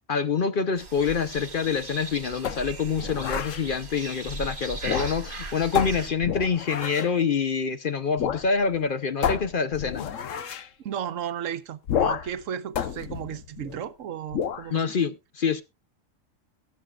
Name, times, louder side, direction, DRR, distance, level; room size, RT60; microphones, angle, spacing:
voice 1, 0.1-10.1 14.7-15.6, left 5 dB, 50° left, 0.7 m, -26 dB
sound 1, 0.8-6.1, right 2 dB, 40° right, 2.0 m, -38 dB
sound 2, 2.4-3.7 4.8-5.4 5.8-7.2 8.2-8.5 8.7-8.8 9.2-10.7 11.9-12.4 12.8-13.9 14.3-14.7, left 8 dB, 75° left, 1.2 m, -30 dB
voice 2, 10.8-14.9, right 9 dB, 80° right, 1.1 m, -34 dB
22.0 x 7.5 x 2.3 m
omnidirectional pair, 1.3 m